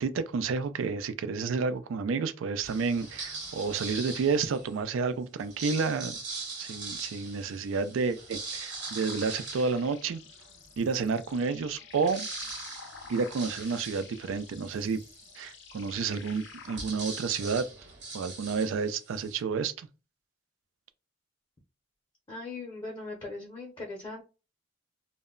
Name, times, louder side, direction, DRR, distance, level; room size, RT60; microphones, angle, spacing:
voice 1, 0.0-6.2 6.6-10.2 10.8-12.3 13.1-15.0 15.4-17.6 18.1-19.9, right 5 dB, 85° right, 0.4 m, -30 dB
sound 1, 2.6-4.8 5.4-10.6 11.1-11.2 11.4-19.4, right 3 dB, 60° right, 1.0 m, -41 dB
sound 2, 8.7-16.8, left 6 dB, 65° left, 0.5 m, -50 dB
voice 2, 22.3-24.2, left 2 dB, 25° left, 0.6 m, -39 dB
2.1 x 2.0 x 3.6 m
head